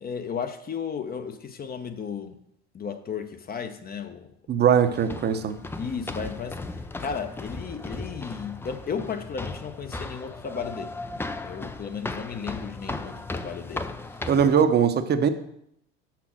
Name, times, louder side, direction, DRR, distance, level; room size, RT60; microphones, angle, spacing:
voice 1, 0.0-2.4 2.7-4.3 5.8-6.7 7.0-13.9, left 6 dB, 30° left, 0.8 m, -34 dB
voice 2, 4.5-5.6 14.3-15.3, right 7 dB, 30° right, 0.8 m, -21 dB
sound 1, 4.8-14.6, left 2 dB, 5° left, 0.5 m, -36 dB
5.9 x 5.9 x 6.2 m
hypercardioid pair, 80°, 33 cm